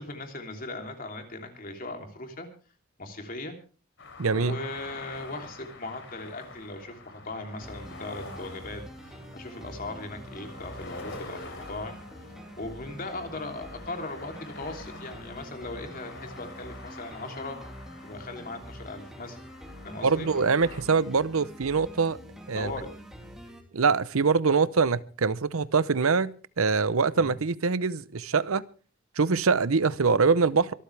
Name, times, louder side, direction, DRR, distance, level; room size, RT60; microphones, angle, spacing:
voice 1, 0.0-2.5 3.0-3.6 4.3-12.0 12.6-17.6 18.0-19.4 19.8-20.3 22.5-22.9 27.1-27.4, left 2 dB, 40° left, 3.2 m, -38 dB
sound 1, 4.0-20.8, left 2 dB, 60° left, 3.6 m, -46 dB
voice 2, 4.2-4.6 20.0-22.2 22.5-22.7 23.7-28.6 29.2-30.7, right 5 dB, 85° right, 0.7 m, -24 dB
sound 2, 7.6-23.6, equal, ahead, 2.7 m, -46 dB
24.5 x 13.0 x 3.4 m
head